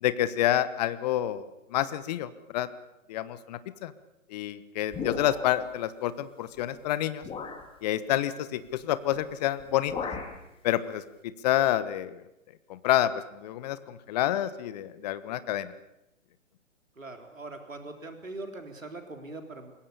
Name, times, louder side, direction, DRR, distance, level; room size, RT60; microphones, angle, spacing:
voice 1, 0.0-2.7 3.1-3.9 4.3-7.2 7.8-9.9 10.6-12.2 12.7-15.7, left 12 dB, 30° left, 14 dB, 1.3 m, -28 dB
sound 1, 4.9-5.7 6.6-6.7 7.2-7.7 9.1-9.3 9.6-10.4, left 5 dB, 15° left, 2.8 m, -36 dB
voice 2, 17.0-19.7, right 2 dB, 80° right, 4 dB, 3.8 m, -41 dB
27.5 x 22.5 x 6.9 m, 0.92 s
figure-of-eight pair, 130°, 39 cm